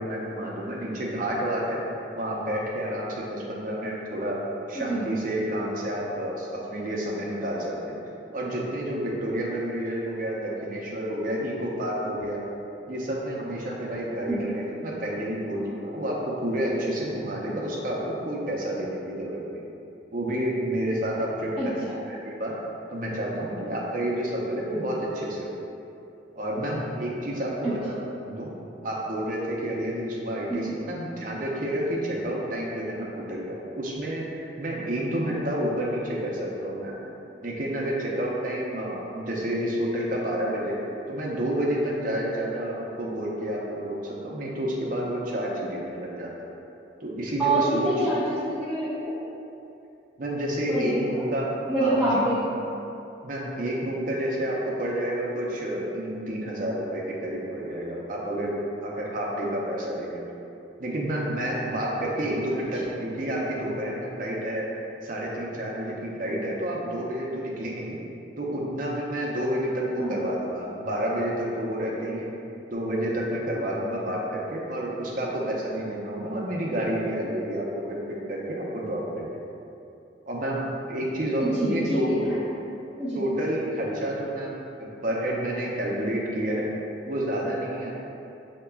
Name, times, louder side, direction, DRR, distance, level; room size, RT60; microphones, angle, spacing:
voice 1, 0.0-1.8 2.1-4.4 4.7-8.0 8.3-12.4 12.9-19.6 20.1-21.7 22.1-22.5 22.9-25.5 26.4-28.5 28.8-36.9 37.4-40.8 41.1-46.5 47.0-47.9 50.2-51.5 51.8-51.9 53.2-58.5 58.8-60.2 60.8-64.7 65.0-68.0 68.4-72.3 72.7-78.0 78.3-79.4 80.3-80.6 80.9-82.1 83.1-86.7 87.0-87.9, right 1 dB, 50° right, -3 dB, 0.6 m, -29 dB
voice 2, 4.7-5.1 14.3-14.4 21.6-21.7 27.6-27.7 30.5-30.7 47.4-49.1 50.7-51.0 51.7-52.5 70.0-70.2 81.4-82.3 83.0-83.2, right 1 dB, 5° right, -12 dB, 0.6 m, -26 dB
6.8 x 2.9 x 2.3 m, 2.8 s
head